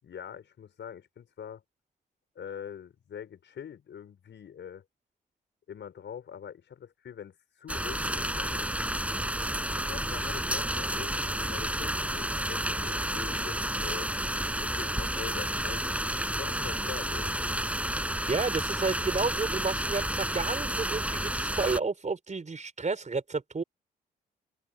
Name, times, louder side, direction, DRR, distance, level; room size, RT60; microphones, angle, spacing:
voice 1, 0.0-1.6 2.4-4.8 5.7-8.7 9.8-14.1 14.6-17.9, left 8 dB, 60° left, 5.5 m, -44 dB
sound 1, 7.7-21.8, right 1 dB, 5° right, 7.2 m, -31 dB
voice 2, 18.3-23.6, right 4 dB, 35° right, 4.2 m, -31 dB
hypercardioid pair, 40°, 21 cm